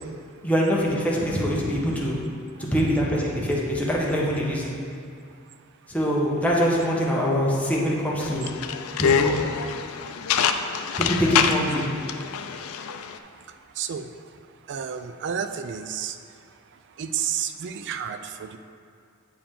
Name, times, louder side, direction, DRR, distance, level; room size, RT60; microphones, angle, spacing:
voice 1, 0.4-2.2 2.6-4.7 5.9-8.5 8.9-9.3 11.0-11.9, equal, 5° left, -5 dB, 1.0 m, -24 dB
sound 1, 8.2-13.2, left 7 dB, 80° left, 0.4 m, -25 dB
voice 2, 14.7-16.1 17.0-18.6, right 8 dB, 55° right, 9 dB, 0.4 m, -31 dB
8.4 x 4.8 x 3.7 m, 2.3 s
head